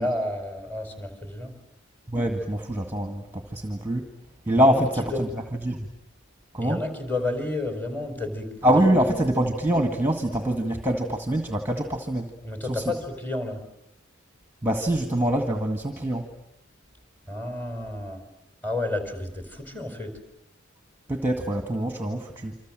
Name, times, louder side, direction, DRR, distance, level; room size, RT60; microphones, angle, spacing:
voice 1, 0.0-1.5 4.5-5.3 6.6-8.5 12.4-13.6 17.3-18.2 18.6-20.1, left 2 dB, 10° left, 6 dB, 4.8 m, -31 dB
voice 2, 2.1-4.1 4.5-5.8 6.5-6.8 8.6-12.3 12.6-12.9 14.6-16.3 21.1-22.6, right 1 dB, 10° right, 6 dB, 1.9 m, -24 dB
28.0 x 26.0 x 7.7 m, 0.81 s
head